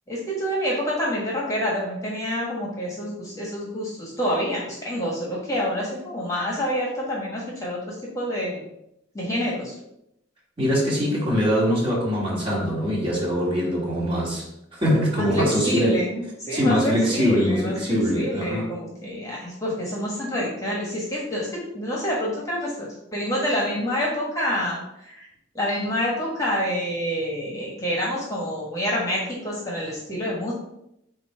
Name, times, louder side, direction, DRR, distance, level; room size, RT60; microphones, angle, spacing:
voice 1, 0.1-8.7 9.1-9.7 15.2-17.7 18.1-25.3 25.5-30.5, equal, 15° left, -4 dB, 1.3 m, -27 dB
voice 2, 10.6-15.9 16.5-18.7, equal, 30° right, -5 dB, 2.2 m, -23 dB
8.0 x 2.7 x 4.5 m, 0.80 s
head